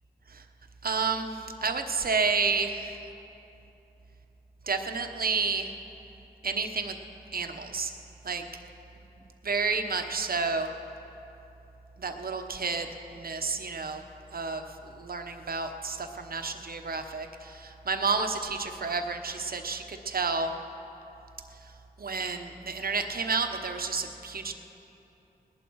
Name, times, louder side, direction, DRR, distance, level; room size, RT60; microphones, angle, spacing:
voice 1, 0.8-3.0 4.6-5.7 6.4-7.0 7.3-7.9 8.2-8.4 9.4-10.7 12.0-14.0 14.3-20.5 21.6-21.7 22.0-24.6, right 4 dB, 65° right, 6 dB, 1.1 m, -30 dB
20.0 x 11.5 x 4.7 m, 3.0 s
cardioid pair, 50°, 17 cm